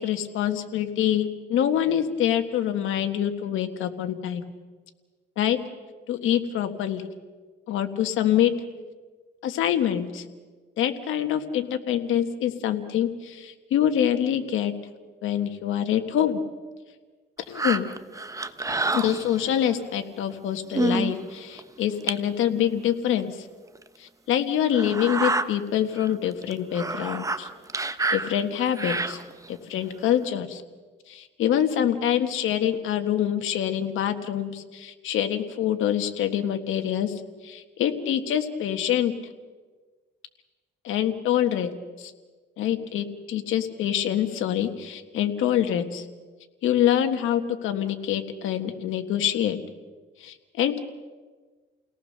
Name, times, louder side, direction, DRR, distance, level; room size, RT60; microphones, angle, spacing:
voice 1, 0.0-4.4 5.4-5.6 6.1-7.1 7.7-8.5 9.4-10.2 10.8-14.7 15.2-16.4 17.5-17.9 18.9-23.3 24.0-27.5 28.1-29.2 29.5-30.6 31.1-37.1 37.4-39.1 40.8-42.1 42.6-46.0 46.6-49.6 50.2-50.8, left 10 dB, 85° left, 7 dB, 1.6 m, -25 dB
sound 1, 17.5-19.6 20.3-20.4 20.7-21.1 21.6-21.7 22.1-22.2 23.2-23.3 23.8-23.9 24.7-25.4 26.0-26.1 26.4-29.5 30.1-30.2, right 2 dB, 15° right, 1.1 m, -28 dB
29.5 x 18.5 x 6.7 m, 1.4 s
cardioid pair, 90°, 20 cm